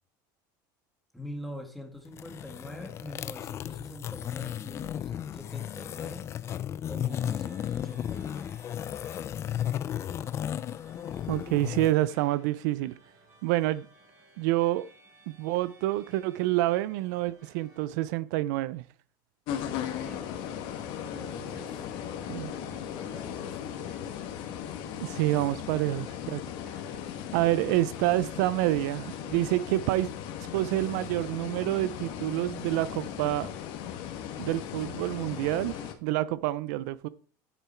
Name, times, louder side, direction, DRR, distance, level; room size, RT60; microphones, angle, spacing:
voice 1, 1.1-6.3 6.9-8.6 20.0-20.3 21.1-21.9 23.0-23.6, left 1 dB, ahead, 1.9 m, -44 dB
sound 1, 2.1-11.9, left 10 dB, 30° left, 0.4 m, -34 dB
sound 2, 7.1-17.9, right 3 dB, 30° right, 5.7 m, -59 dB
voice 2, 11.3-12.9 13.4-13.9 14.4-14.9 15.3-18.8 22.3-22.5 25.0-26.4 27.3-30.1 30.5-33.5 34.4-37.1, right 16 dB, 75° right, 0.6 m, -28 dB
sound 3, 19.5-35.9, left 9 dB, 55° left, 1.9 m, -37 dB
10.0 x 8.4 x 4.5 m
cardioid pair, 155°, 10 cm